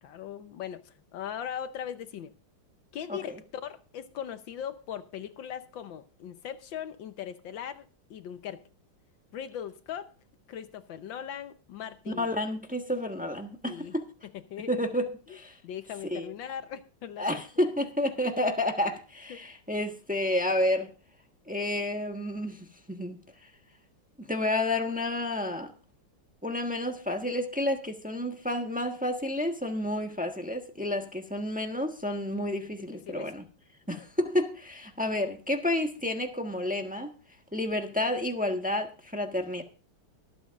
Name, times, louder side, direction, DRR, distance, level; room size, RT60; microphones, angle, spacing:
voice 1, 0.0-2.3 2.9-8.6 9.3-10.1 10.5-12.3 13.7-13.9 14.2-14.7 15.3-15.4 15.6-17.4 18.8-19.0 19.3-19.4 33.1-33.3 33.9-34.1, left 9 dB, 65° left, 1.5 m, -39 dB
voice 2, 12.2-14.0 14.7-15.6 16.1-16.3 17.2-20.9 21.5-23.2 24.2-25.7 26.4-33.4 33.9-37.1 37.5-39.6, left 1 dB, 5° right, 0.8 m, -30 dB
24.0 x 8.6 x 2.5 m
omnidirectional pair, 2.4 m